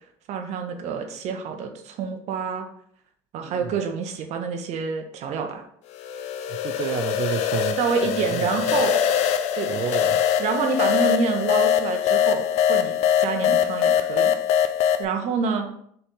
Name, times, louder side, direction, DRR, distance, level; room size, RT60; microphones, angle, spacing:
voice 1, 0.3-2.7 3.3-5.6 7.8-9.0 9.5-9.9 10.4-14.3 15.0-15.7, right 5 dB, 60° right, 5 dB, 0.8 m, -27 dB
voice 2, 3.4-3.8 6.5-7.8 8.0-8.8 9.7-10.2, right 8 dB, 45° right, 5 dB, 0.4 m, -31 dB
sound 1, 6.0-15.1, left 9 dB, 60° left, 0.4 m, -22 dB
4.1 x 3.3 x 3.7 m, 0.68 s
hypercardioid pair, 75°, 13 cm